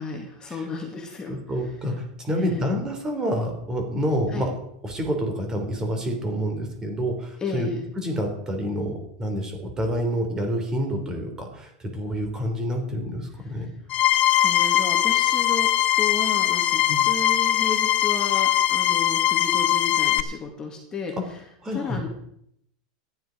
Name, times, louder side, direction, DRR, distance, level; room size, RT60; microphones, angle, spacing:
voice 1, 0.0-1.4 1.6-1.7 2.3-2.6 4.3-4.5 7.4-7.8 13.4-13.7 14.2-21.4 21.7-22.1, left 4 dB, 20° left, 1 dB, 2.2 m, -33 dB
voice 2, 1.3-4.5 4.8-7.7 8.0-13.7 16.9-17.0 21.6-22.0, equal, 15° right, 4 dB, 3.4 m, -28 dB
sound 1, 13.9-20.2, left 12 dB, 35° left, 0.9 m, -21 dB
14.0 x 10.5 x 5.2 m, 0.73 s
supercardioid pair, 145°, 4 cm